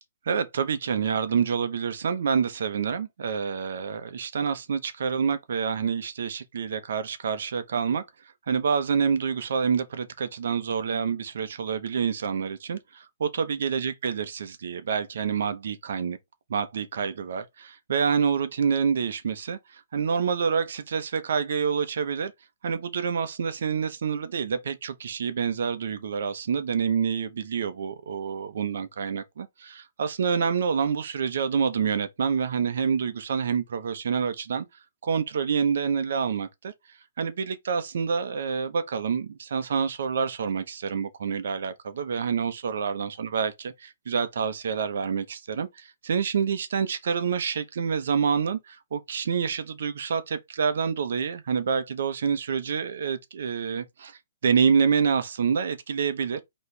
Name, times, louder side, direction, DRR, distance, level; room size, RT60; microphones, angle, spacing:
voice 1, 0.3-8.0 8.5-16.2 16.5-22.3 22.6-34.6 35.0-36.7 37.2-43.5 43.8-56.4, right 6 dB, 65° right, 0.9 m, -27 dB
4.3 x 3.1 x 3.3 m
hypercardioid pair, 155°, 0 cm